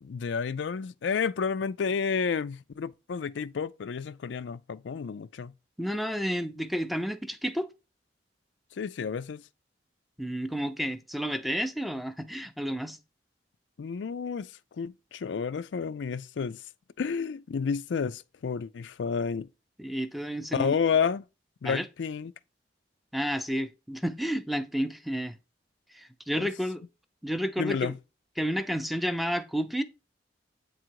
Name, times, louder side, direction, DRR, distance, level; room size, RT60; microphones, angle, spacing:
voice 1, 0.0-5.5 8.8-9.4 13.8-14.5 14.8-16.6 17.0-19.5 20.5-21.2 21.6-22.3 26.4-26.5 27.6-28.0, left 6 dB, 80° left, 0.4 m, -30 dB
voice 2, 5.8-7.7 10.2-13.0 19.8-20.7 21.6-21.8 23.1-25.3 25.9-26.8 27.2-27.9 28.4-29.8, equal, ahead, 0.5 m, -31 dB
8.4 x 3.8 x 4.6 m
head